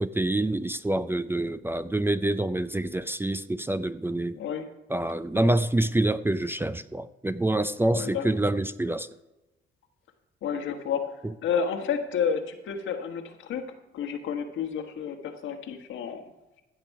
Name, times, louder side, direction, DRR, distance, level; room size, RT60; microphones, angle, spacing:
voice 1, 0.0-4.4 4.9-9.1, right 1 dB, 10° right, 14 dB, 0.4 m, -26 dB
voice 2, 4.4-4.7 5.3-5.5 7.9-8.2 10.4-11.0 11.4-13.6 13.9-16.2, left 7 dB, 80° left, 5 dB, 1.4 m, -30 dB
15.5 x 6.8 x 4.7 m, 1.0 s
cardioid pair, 90°, 20 cm